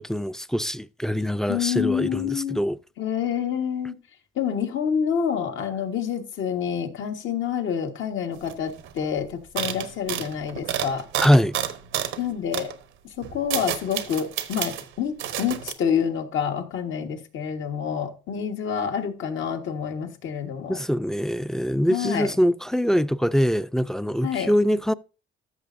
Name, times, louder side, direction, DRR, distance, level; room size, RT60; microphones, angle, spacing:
voice 1, 0.0-2.8 11.2-11.6 20.7-24.9, equal, ahead, 0.4 m, -23 dB
voice 2, 1.5-2.6 3.0-3.9 4.4-11.1 12.2-12.7 13.2-20.8 21.9-22.3 24.2-24.5, left 8 dB, 75° left, 1.6 m, -27 dB
sound 1, 8.5-8.6 8.8-9.0 9.6-12.2 12.5-12.7 13.2-14.9 15.2-15.7, right 10 dB, 90° right, 1.0 m, -30 dB
14.0 x 6.3 x 2.6 m
cardioid pair, 90°, 20 cm